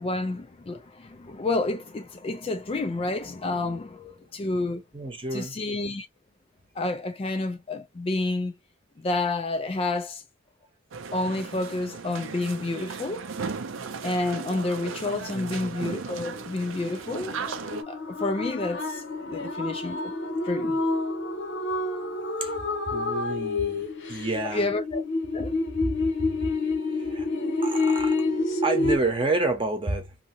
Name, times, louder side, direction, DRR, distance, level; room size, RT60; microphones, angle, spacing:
voice 1, 0.0-4.8 5.3-6.1 6.8-8.5 9.0-10.2 11.1-13.2 14.0-17.6 17.9-20.1 20.4-20.8 24.5-25.0 25.3-25.5, left 2 dB, 30° left, 0.3 m, -29 dB
voice 2, 4.9-5.5 15.3-15.7 22.4-22.5 22.9-24.7 25.7-26.5 27.0-27.3 27.6-28.2 28.6-30.1, right 2 dB, 25° right, 0.8 m, -29 dB
sound 1, 10.9-17.8, right 5 dB, 70° right, 0.5 m, -36 dB
sound 2, 16.2-29.0, left 2 dB, 65° left, 0.8 m, -28 dB
2.8 x 2.6 x 2.6 m
head